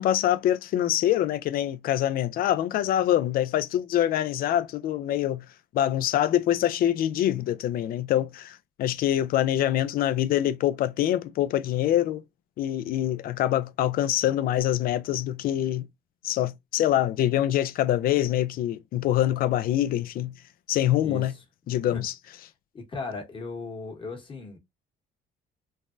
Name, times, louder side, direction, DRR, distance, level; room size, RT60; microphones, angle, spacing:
voice 1, 0.0-5.4 5.7-12.2 12.6-15.9 16.2-20.3 20.7-21.3 21.7-22.1, left 12 dB, 60° left, 0.4 m, -25 dB
voice 2, 22.7-24.6, left 3 dB, 30° left, 1.1 m, -36 dB
3.2 x 2.2 x 2.5 m
cardioid pair, 110°, 17 cm